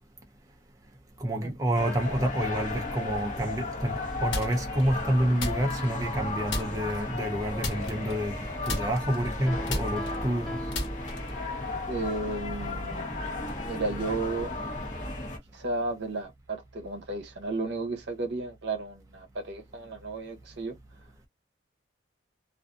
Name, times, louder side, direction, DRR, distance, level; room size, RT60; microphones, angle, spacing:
voice 1, 1.2-8.3 8.6-10.6, right 1 dB, 15° right, 0.4 m, -28 dB
sound 1, 1.7-15.4, left 2 dB, 40° left, 0.9 m, -34 dB
sound 2, 4.3-4.8 5.4-6.2 6.5-7.0 7.6-8.4 8.7-11.4, left 1 dB, 75° left, 1.1 m, -34 dB
Piano, 9.5-11.8, equal, ahead, 0.8 m, -40 dB
voice 2, 11.9-13.1 13.6-14.5 15.5-20.8, right 2 dB, 65° right, 0.7 m, -33 dB
2.4 x 2.3 x 2.4 m
head